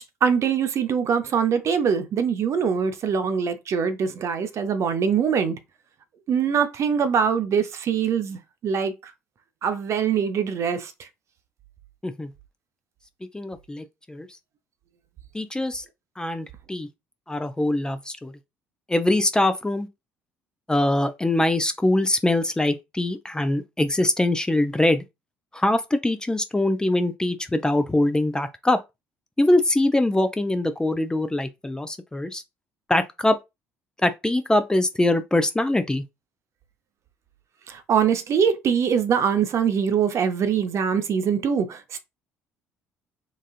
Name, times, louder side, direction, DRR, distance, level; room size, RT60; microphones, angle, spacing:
voice 1, 0.0-5.6 6.3-9.1 9.6-11.1 37.7-42.0, right 7 dB, 45° right, 0.6 m, -23 dB
voice 2, 13.3-14.3 15.3-15.8 16.2-16.9 17.3-18.3 18.9-19.9 20.7-25.0 25.5-28.8 29.4-32.4 32.9-33.4 34.0-36.0, left 1 dB, 10° left, 0.4 m, -23 dB
4.0 x 2.4 x 2.4 m
figure-of-eight pair, 50°, 7 cm